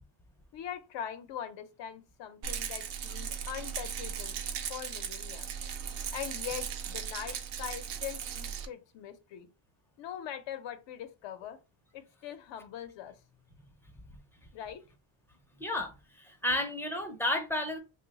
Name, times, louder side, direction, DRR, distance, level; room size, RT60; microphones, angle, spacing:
voice 1, 0.5-4.4 4.7-5.5 6.1-9.5 10.0-11.6 11.9-13.2 14.5-14.8, left 9 dB, 70° left, 0.6 m, -42 dB
Rattle, 2.4-8.7, right 8 dB, 80° right, 0.7 m, -37 dB
voice 2, 15.6-17.8, left 1 dB, 5° left, 0.4 m, -32 dB
3.0 x 2.1 x 3.9 m
cardioid pair, 145°, 45 cm